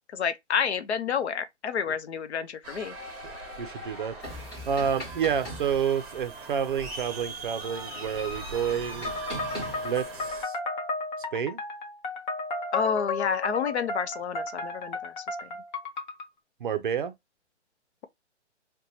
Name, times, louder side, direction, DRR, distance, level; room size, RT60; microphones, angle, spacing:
voice 1, 0.1-2.9 12.7-15.1 15.4-15.5, left 7 dB, 65° left, 0.6 m, -29 dB
sound 1, 2.6-10.4, right 2 dB, 20° right, 0.8 m, -41 dB
voice 2, 3.6-4.2 4.7-9.1 9.8-10.6 11.3-11.6 16.6-17.1, right 7 dB, 45° right, 0.5 m, -29 dB
sound 2, 4.2-10.3, equal, 15° left, 1.2 m, -43 dB
sound 3, 9.0-16.3, left 3 dB, 40° left, 0.9 m, -33 dB
2.7 x 2.2 x 3.9 m
hypercardioid pair, 155°, 36 cm